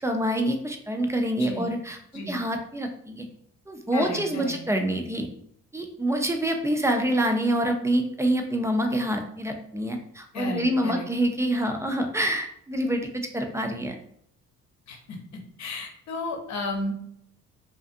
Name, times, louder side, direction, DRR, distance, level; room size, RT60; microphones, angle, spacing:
voice 1, 0.0-2.0 2.3-3.3 3.7-5.3 5.7-14.0, right 1 dB, 10° right, 4 dB, 0.3 m, -26 dB
voice 2, 3.9-4.5 10.3-11.1 14.9-15.2 15.6-16.9, left 2 dB, 65° left, 2 dB, 0.7 m, -33 dB
2.5 x 2.4 x 2.5 m, 0.68 s
cardioid pair, 90°, 30 cm